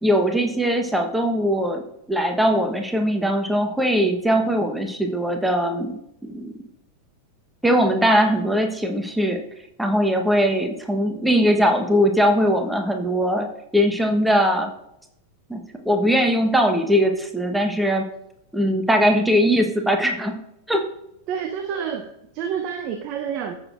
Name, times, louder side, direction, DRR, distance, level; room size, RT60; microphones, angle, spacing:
voice 1, 0.0-1.8 2.1-6.5 7.6-9.4 9.8-13.5 13.7-14.7 15.5-18.1 18.5-20.3 20.7-20.9, equal, 5° right, 4 dB, 1.1 m, -20 dB
voice 2, 21.3-23.5, right 7 dB, 40° right, 5 dB, 0.8 m, -29 dB
15.0 x 6.5 x 2.5 m, 0.82 s
figure-of-eight pair, 90°, 0 cm